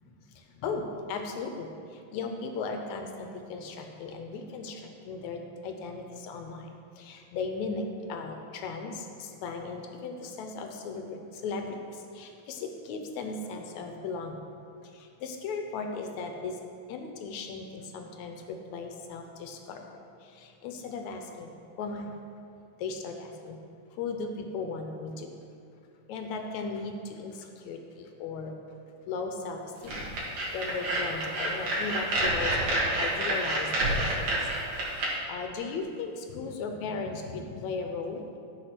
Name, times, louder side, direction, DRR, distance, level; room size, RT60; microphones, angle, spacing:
voice 1, 0.4-6.7 7.0-14.4 14.9-16.6 16.9-19.8 20.2-21.5 21.8-22.1 22.8-23.6 23.9-25.3 26.1-28.5 29.1-30.1 30.5-34.5 35.3-38.4, left 4 dB, 75° left, 4 dB, 1.9 m, -37 dB
sound 1, 29.9-35.1, right 1 dB, 60° right, 2.6 m, -28 dB
11.0 x 5.0 x 5.9 m, 2.5 s
omnidirectional pair, 3.7 m